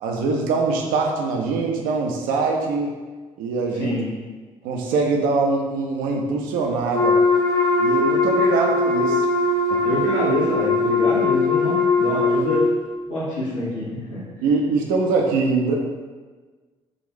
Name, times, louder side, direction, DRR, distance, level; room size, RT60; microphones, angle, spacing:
voice 1, 0.0-2.9 3.4-3.9 4.6-7.2 7.8-9.3 9.7-9.8 14.4-15.7, right 4 dB, 60° right, 1 dB, 0.6 m, -23 dB
voice 2, 3.7-4.1 9.8-12.6 13.1-14.2, left 1 dB, 80° left, -9 dB, 1.1 m, -26 dB
Wind instrument woodwind instrument, 6.9-12.7, left 3 dB, 20° left, 0.9 m, -20 dB
3.8 x 2.5 x 3.2 m, 1.4 s
figure-of-eight pair, 45°, 16 cm